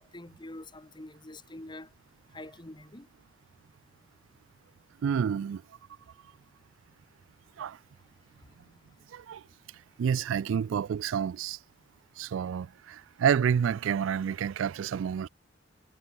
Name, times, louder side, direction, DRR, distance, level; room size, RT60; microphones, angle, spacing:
voice 1, 0.0-1.9 2.3-3.1, left 1 dB, 25° left, 1.9 m, -45 dB
voice 2, 5.0-5.6 7.6-7.8 9.1-9.4 10.0-11.6 12.2-15.3, right 7 dB, 75° right, 0.3 m, -29 dB
head